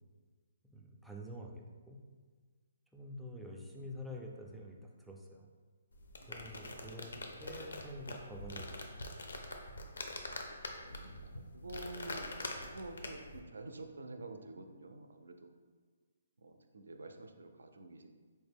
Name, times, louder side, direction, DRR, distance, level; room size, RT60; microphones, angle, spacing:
voice 1, 0.7-2.0 2.9-5.5 6.2-7.1 7.4-8.7, equal, ahead, -2 dB, 0.3 m, -47 dB
sound 1, 5.9-13.4, left 2 dB, 85° left, 0.5 m, -44 dB
voice 2, 6.5-7.1 10.1-15.5 16.4-18.2, right 2 dB, 80° right, 6 dB, 0.4 m, -49 dB
4.3 x 2.1 x 3.4 m, 1.5 s
hypercardioid pair, 155°, 0 cm